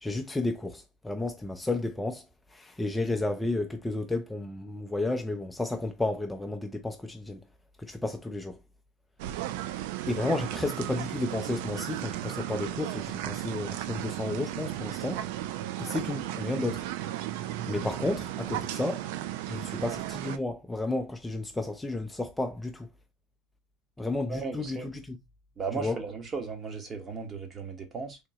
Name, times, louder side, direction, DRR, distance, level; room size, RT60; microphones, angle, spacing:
voice 1, 0.0-2.2 2.5-7.4 7.8-8.6 10.1-15.2 15.8-16.8 17.7-19.1 19.5-22.9 24.0-25.2 25.8-26.0, left 2 dB, 10° left, 0.4 m, -32 dB
sound 1, 9.2-20.4, right 13 dB, 75° right, 0.4 m, -35 dB
voice 2, 24.3-24.9 25.6-28.2, right 5 dB, 30° right, 1.2 m, -36 dB
3.5 x 2.9 x 2.9 m
supercardioid pair, 105°, 0 cm